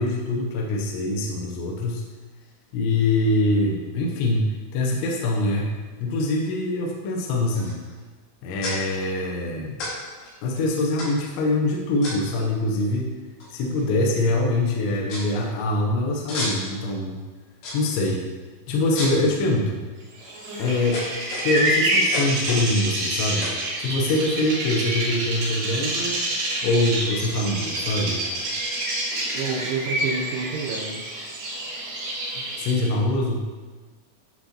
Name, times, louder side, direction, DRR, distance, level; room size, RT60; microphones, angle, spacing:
voice 1, 0.0-2.0 2.7-5.7 6.0-7.8 8.4-9.8 10.4-13.1 13.5-17.2 17.7-18.2 18.7-19.9 20.6-21.1 21.4-23.5 23.8-26.2 26.6-28.2 32.4-33.4, left 2 dB, 75° left, -1 dB, 2.9 m, -24 dB
sound 1, 7.6-7.9 8.6-8.8 9.8-9.9 10.2-10.3 11.0-11.4 12.0-12.4 13.4-13.5 13.8-14.2 14.5-14.6 15.1-15.3 16.3-16.8 17.6-18.0 19.0-19.3 20.0-20.3 20.9-21.7 22.1-22.7 23.4-23.6, left 1 dB, 60° left, 3.4 m, -32 dB
Bird vocalization bird call bird song, 20.2-32.9, right 1 dB, 60° right, 4.3 m, -27 dB
voice 2, 29.3-31.0, right 5 dB, 80° right, -1 dB, 3.0 m, -29 dB
11.5 x 5.0 x 2.9 m, 1.3 s
omnidirectional pair, 5.9 m